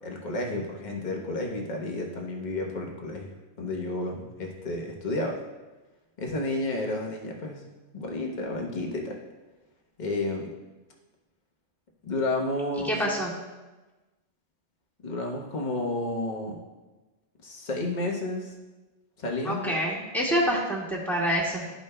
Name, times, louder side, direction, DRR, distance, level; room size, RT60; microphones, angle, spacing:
voice 1, 0.0-5.4 6.2-7.6 7.9-9.2 10.0-10.5 12.0-13.0 15.0-16.6 17.4-18.5 19.2-19.8, left 2 dB, 45° left, 0 dB, 1.2 m, -31 dB
voice 2, 12.8-13.3 19.4-21.7, equal, ahead, -6 dB, 1.7 m, -27 dB
13.0 x 5.2 x 2.2 m, 1.2 s
omnidirectional pair, 1.1 m